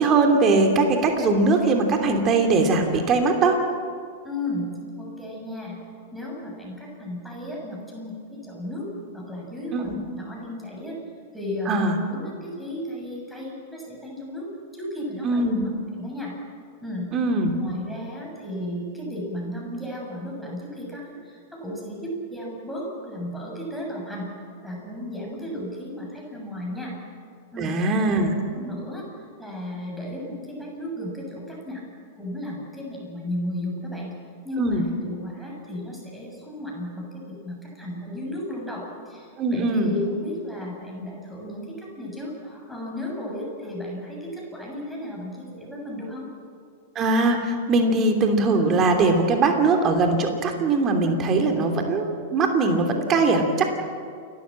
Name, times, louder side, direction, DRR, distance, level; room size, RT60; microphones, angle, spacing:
voice 1, 0.0-3.6 9.7-10.0 11.7-12.0 15.2-15.6 17.1-17.6 27.6-28.3 34.6-34.8 39.4-39.9 46.9-53.6, right 3 dB, 30° right, 4 dB, 2.9 m, -21 dB
voice 2, 4.2-4.7 5.0-5.8 6.1-8.9 9.1-11.0 11.3-11.8 12.1-15.5 15.9-16.4 16.8-17.1 17.6-24.3 24.6-27.0 27.5-27.8 28.5-31.8 32.2-34.1 34.4-46.3, left 1 dB, ahead, -2 dB, 7.3 m, -34 dB
29.0 x 13.0 x 7.6 m, 2.3 s
figure-of-eight pair, 100°, 0 cm